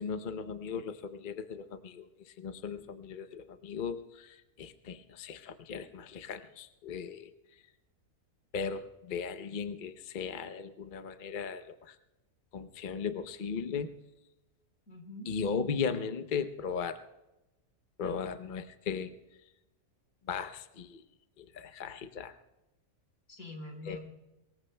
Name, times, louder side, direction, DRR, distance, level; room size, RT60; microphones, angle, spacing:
voice 1, 0.0-7.3 8.5-12.0 12.5-13.9 15.3-17.0 18.0-19.1 20.3-21.0 21.4-22.3 23.9-24.0, left 6 dB, 45° left, 9 dB, 0.7 m, -37 dB
voice 2, 14.9-15.3 18.0-18.2 23.3-24.0, left 2 dB, 65° left, 2 dB, 4.2 m, -45 dB
24.0 x 21.5 x 2.2 m, 1.0 s
omnidirectional pair, 1.6 m